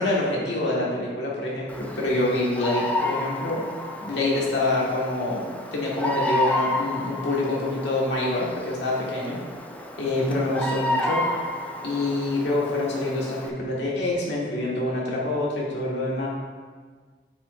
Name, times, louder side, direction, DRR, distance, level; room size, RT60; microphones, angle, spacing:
voice 1, 0.0-3.6 4.0-9.4 10.0-11.2 11.8-16.3, left 2 dB, 85° left, -4 dB, 1.8 m, -26 dB
Bird vocalization bird call bird song, 1.7-13.5, left 2 dB, 10° left, 0.5 m, -31 dB
8.6 x 5.7 x 2.6 m, 1.6 s
head